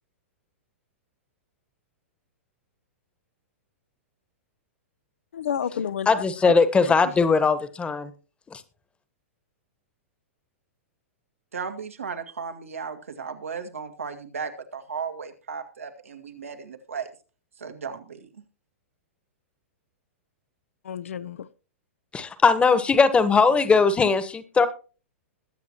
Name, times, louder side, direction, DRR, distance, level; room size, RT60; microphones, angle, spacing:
voice 1, 5.3-6.5 6.8-7.1 20.8-21.5, left 8 dB, 75° left, 16 dB, 0.7 m, -31 dB
voice 2, 6.1-8.1 8.5-8.6 22.1-24.7, left 4 dB, 15° left, 14 dB, 1.3 m, -20 dB
voice 3, 11.5-17.1 17.6-18.2, right 6 dB, 85° right, 5 dB, 1.9 m, -35 dB
21.5 x 8.2 x 3.0 m, 0.36 s
hypercardioid pair, 110°, 7 cm